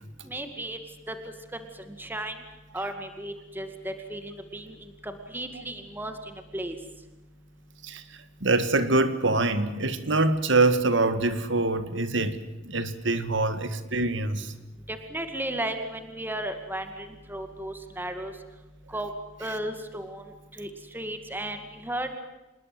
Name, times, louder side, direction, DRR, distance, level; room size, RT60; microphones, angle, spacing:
voice 1, 0.2-0.8 1.1-1.2 2.0-2.3 2.7-6.8 14.9-18.3 18.9-19.1 19.4-20.2 20.6-22.2, right 1 dB, 10° right, 2.1 m, -34 dB
voice 2, 8.4-12.4 12.6-14.5, right 2 dB, 65° right, 1.9 m, -24 dB
26.5 x 21.0 x 7.8 m
head